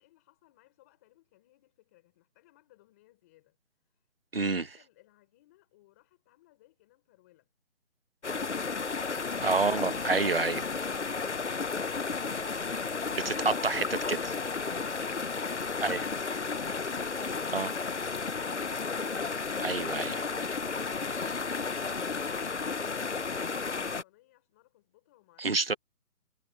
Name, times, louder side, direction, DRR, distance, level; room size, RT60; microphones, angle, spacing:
voice 1, 0.0-7.5 20.4-25.8, left 17 dB, 10° left, 6.2 m, -63 dB
voice 2, 4.3-4.7 9.4-10.6 13.2-14.2 15.8-16.0 17.5-17.7 19.6-20.3 25.4-25.7, right 3 dB, 40° right, 1.1 m, -28 dB
sound 1, 8.2-24.0, left 4 dB, 50° left, 0.7 m, -33 dB
hypercardioid pair, 180°, 45 cm